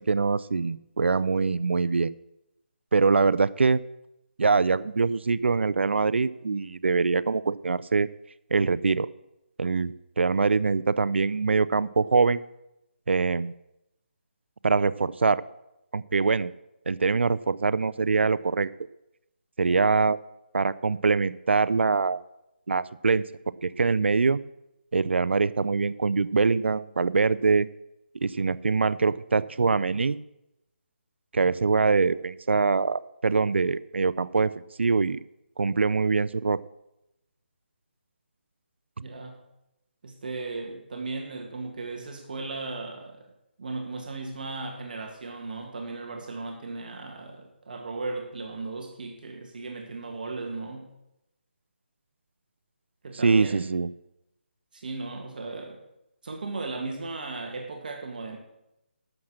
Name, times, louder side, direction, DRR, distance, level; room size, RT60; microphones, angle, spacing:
voice 1, 0.1-2.1 2.9-3.8 4.4-8.1 8.5-9.1 9.6-12.4 13.1-13.5 14.6-15.4 15.9-16.5 16.9-18.7 19.6-20.2 20.5-22.2 22.7-24.4 24.9-27.7 28.2-30.2 31.3-34.5 34.8-35.2 35.6-36.6 53.2-53.9, right 4 dB, 85° right, 16 dB, 0.5 m, -23 dB
voice 2, 39.0-39.4 40.0-43.3 43.6-50.9 53.0-53.7 54.7-55.8 56.2-58.4, right 3 dB, 50° right, 1 dB, 1.9 m, -36 dB
12.0 x 6.5 x 7.4 m, 0.89 s
hypercardioid pair, 170°, 6 cm